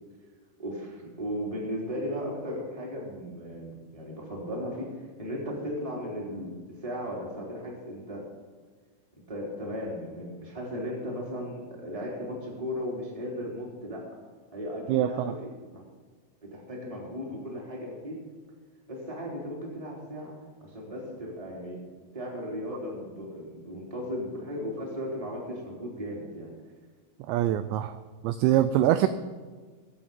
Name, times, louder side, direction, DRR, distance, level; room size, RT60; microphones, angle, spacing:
voice 1, 0.6-6.6 6.8-8.2 9.3-14.1 14.5-15.8 16.4-18.2 18.9-21.8 22.1-26.5, equal, 10° right, -3 dB, 2.6 m, -36 dB
voice 2, 14.9-15.3 27.3-28.0 28.2-29.1, right 12 dB, 85° right, 11 dB, 2.6 m, -24 dB
20.5 x 8.5 x 5.5 m, 1.5 s
omnidirectional pair, 5.5 m